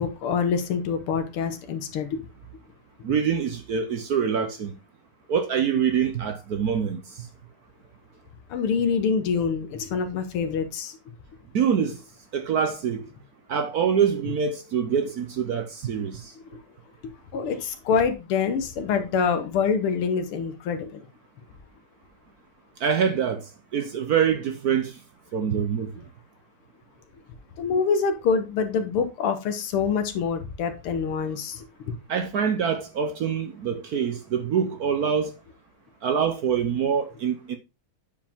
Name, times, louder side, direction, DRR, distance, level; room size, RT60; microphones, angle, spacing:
voice 1, 0.0-2.2 8.5-11.0 17.3-21.0 27.6-31.6, left 6 dB, 80° left, 2.0 m, -25 dB
voice 2, 3.0-4.7 5.3-7.3 11.5-12.0 12.3-13.1 13.5-16.3 22.8-25.0 25.3-25.9 32.1-35.3 36.0-37.6, right 7 dB, 65° right, 1.0 m, -25 dB
9.1 x 4.9 x 3.6 m
omnidirectional pair, 2.4 m